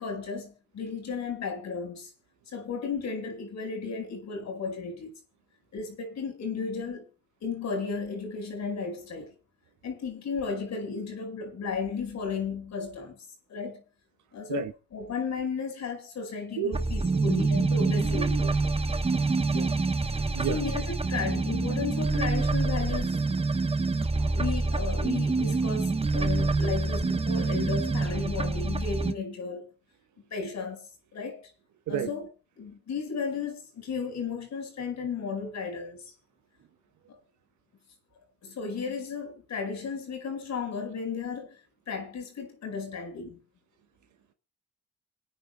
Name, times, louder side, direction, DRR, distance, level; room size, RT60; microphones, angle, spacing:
voice 1, 0.0-2.1 2.5-5.1 5.7-7.1 7.4-9.3 9.8-13.8 14.3-18.5 19.5-19.8 20.4-23.4 24.3-29.7 30.3-30.9 31.1-31.5 31.9-32.3 32.6-36.1 37.1-37.2 38.4-41.6 41.9-43.4, left 5 dB, 65° left, 5.0 m, -34 dB
voice 2, 16.6-17.2 18.4-19.0 20.3-20.6 24.2-24.4 31.9-32.1, right 9 dB, 75° right, 1.1 m, -33 dB
sound 1, 16.7-29.1, right 3 dB, 20° right, 1.0 m, -26 dB
27.5 x 9.2 x 2.2 m
cardioid pair, 90°, 30 cm